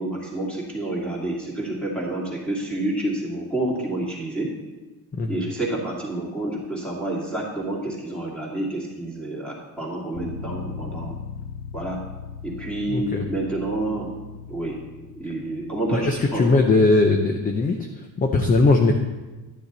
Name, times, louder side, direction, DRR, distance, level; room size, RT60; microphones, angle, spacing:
voice 1, 0.0-4.5 5.3-11.2 11.7-12.0 12.4-14.1 14.5-14.8 15.1-16.6, right 2 dB, 5° left, -5 dB, 2.5 m, -29 dB
Bass guitar, 10.1-16.4, left 5 dB, 55° left, 1.4 m, -38 dB
voice 2, 12.9-13.3 15.9-19.0, left 3 dB, 20° left, 4 dB, 0.5 m, -20 dB
11.5 x 9.9 x 4.0 m, 1.2 s
cardioid pair, 170°, 40 cm